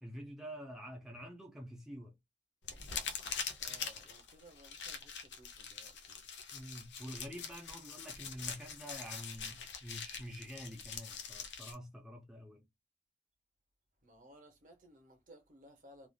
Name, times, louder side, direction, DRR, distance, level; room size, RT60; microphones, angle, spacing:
voice 1, 0.0-2.1 6.5-12.6, equal, 5° right, 0.5 m, -47 dB
sound 1, 2.6-11.7, left 6 dB, 85° left, 0.6 m, -44 dB
voice 2, 3.6-6.2 14.0-16.1, right 1 dB, 45° right, 0.8 m, -59 dB
3.3 x 2.4 x 2.3 m
head